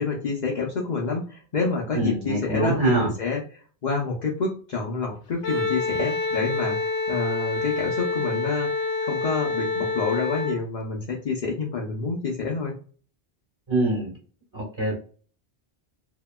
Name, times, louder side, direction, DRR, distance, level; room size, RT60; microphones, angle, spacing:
voice 1, 0.0-8.7 9.0-12.7, left 4 dB, 50° left, -1 dB, 0.7 m, -28 dB
voice 2, 1.9-3.1 13.7-14.1 14.5-14.9, right 1 dB, 25° right, -4 dB, 1.4 m, -24 dB
Wind instrument woodwind instrument, 5.4-10.6, left 3 dB, 90° left, 0.9 m, -27 dB
2.9 x 2.7 x 2.2 m, 0.41 s
omnidirectional pair, 1.1 m